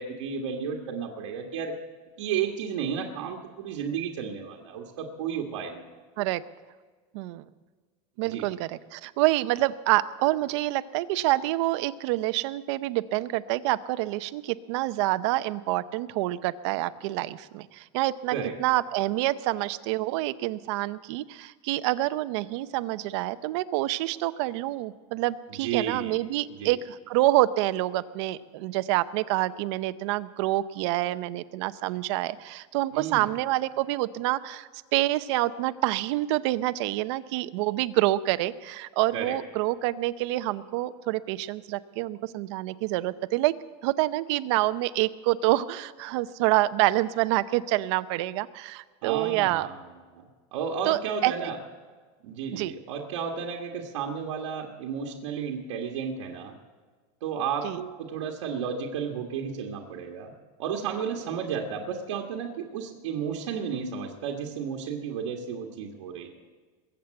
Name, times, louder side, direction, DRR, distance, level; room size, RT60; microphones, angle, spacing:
voice 1, 0.0-1.7 2.2-5.8 8.2-8.5 18.3-18.5 25.6-26.1 26.5-26.8 32.9-33.3 39.1-39.3 49.0-49.7 50.1-50.2 50.5-51.6 52.2-56.5 57.2-60.3 60.6-66.3, right 7 dB, 85° right, 0 dB, 1.8 m, -33 dB
voice 2, 7.1-7.4 8.2-43.5 43.8-49.7 50.8-51.5 52.5-52.7 57.6-57.8, right 17 dB, 65° right, 13 dB, 0.7 m, -27 dB
21.5 x 8.2 x 7.7 m, 1.5 s
supercardioid pair, 150°, 15 cm